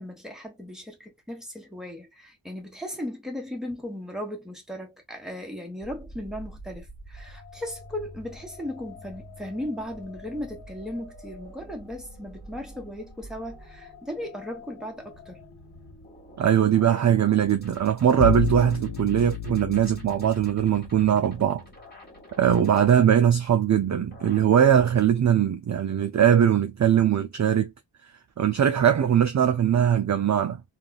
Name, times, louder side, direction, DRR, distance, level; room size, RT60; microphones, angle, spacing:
voice 1, 0.0-15.4, left 1 dB, ahead, 1.3 m, -37 dB
sound 1, 5.8-25.1, left 1 dB, 20° left, 1.7 m, -47 dB
voice 2, 16.4-21.6 22.4-27.7 28.4-30.6, right 9 dB, 35° right, 0.5 m, -21 dB
Bowed string instrument, 18.2-21.3, left 11 dB, 50° left, 0.5 m, -31 dB
3.6 x 2.4 x 2.3 m
wide cardioid pair, 85°, 48 cm